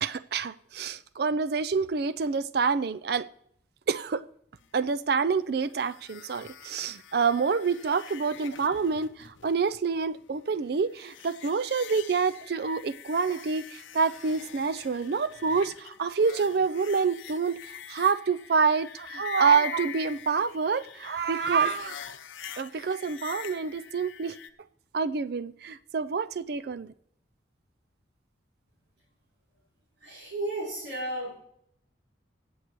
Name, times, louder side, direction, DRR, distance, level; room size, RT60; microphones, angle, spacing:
voice 1, 0.0-3.3 3.9-4.2 4.7-22.0 22.6-24.4 24.9-26.9, right 5 dB, 55° right, 0.4 m, -27 dB
sound 1, 5.7-24.5, left 9 dB, 85° left, 0.7 m, -44 dB
voice 2, 30.0-31.4, right 1 dB, 80° right, 5.1 m, -33 dB
23.5 x 8.1 x 3.0 m
head